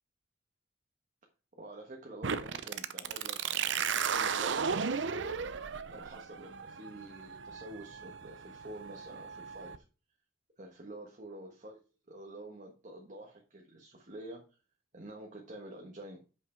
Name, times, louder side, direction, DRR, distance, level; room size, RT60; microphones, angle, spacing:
voice 1, 1.5-5.4 5.9-9.8 10.6-11.8 12.1-14.4 14.9-16.2, right 1 dB, 40° right, 1 dB, 1.5 m, -48 dB
sound 1, 2.2-9.8, right 6 dB, 65° right, 0.6 m, -35 dB
7.9 x 5.7 x 4.5 m, 0.33 s
head